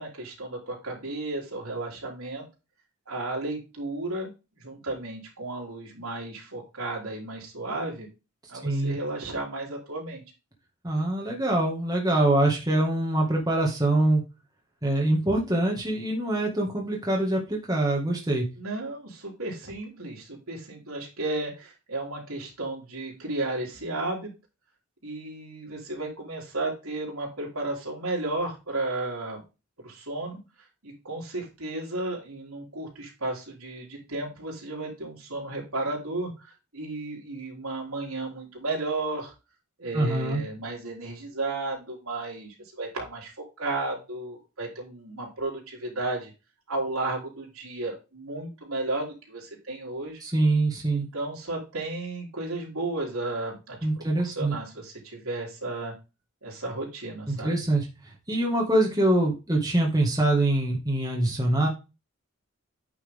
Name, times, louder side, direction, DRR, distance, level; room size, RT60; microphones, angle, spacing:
voice 1, 0.0-2.4 3.1-4.3 4.6-8.1 8.5-10.2 18.6-24.3 25.0-29.4 29.8-30.4 30.8-39.3 39.8-43.3 43.6-46.3 46.7-50.2 50.9-55.9 56.4-57.6, right 2 dB, 80° right, -2 dB, 3.7 m, -33 dB
voice 2, 8.6-9.0 10.8-14.2 14.8-18.5 39.9-40.4 50.2-51.1 53.8-54.5 57.3-57.9 58.3-61.7, right 1 dB, 15° right, -1 dB, 1.9 m, -24 dB
9.4 x 5.9 x 3.7 m, 0.28 s
head